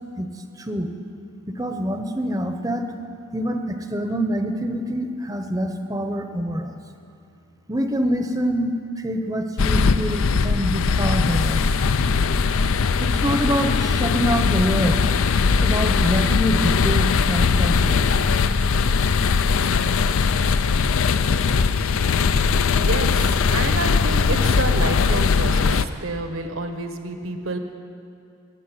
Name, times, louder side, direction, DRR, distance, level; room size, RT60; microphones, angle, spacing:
voice 1, 0.6-0.9 1.5-2.9 3.3-6.8 7.7-11.6 13.0-15.0 15.6-18.1, equal, 15° right, 6 dB, 0.7 m, -25 dB
sound 1, 9.6-25.9, left 5 dB, 75° left, 0.5 m, -20 dB
voice 2, 22.7-27.6, right 2 dB, 70° right, 6 dB, 1.2 m, -29 dB
15.5 x 8.6 x 9.8 m, 2.6 s
head